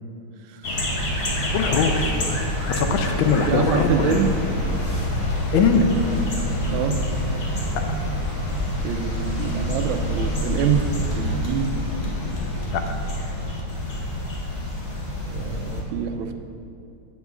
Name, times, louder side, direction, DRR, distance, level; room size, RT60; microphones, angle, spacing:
sound 1, 0.6-15.8, left 1 dB, 40° left, 1.0 m, -26 dB
voice 1, 1.5-2.1 2.7-4.3 5.5-5.9 12.7-12.8, left 5 dB, 85° left, 5 dB, 1.5 m, -21 dB
voice 2, 3.5-4.3 6.7-7.0 8.8-10.9 11.1-11.7 15.3-16.3, right 8 dB, 85° right, 6 dB, 1.4 m, -26 dB
8.1 x 7.3 x 3.6 m, 2.6 s
omnidirectional pair, 2.1 m